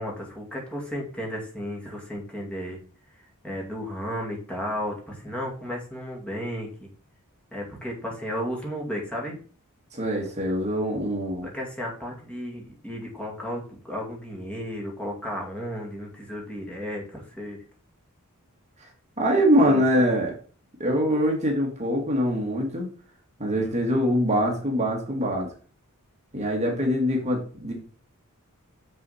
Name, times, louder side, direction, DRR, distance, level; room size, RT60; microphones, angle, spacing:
voice 1, 0.0-2.8 3.4-6.9 7.5-9.4 11.4-17.6 19.6-20.1 23.5-23.8, equal, 5° left, -2 dB, 2.1 m, -34 dB
voice 2, 9.9-11.5 19.2-20.3 20.8-22.9 23.4-25.5 26.3-27.7, equal, 30° right, 0 dB, 1.6 m, -23 dB
6.9 x 6.4 x 4.2 m, 0.42 s
head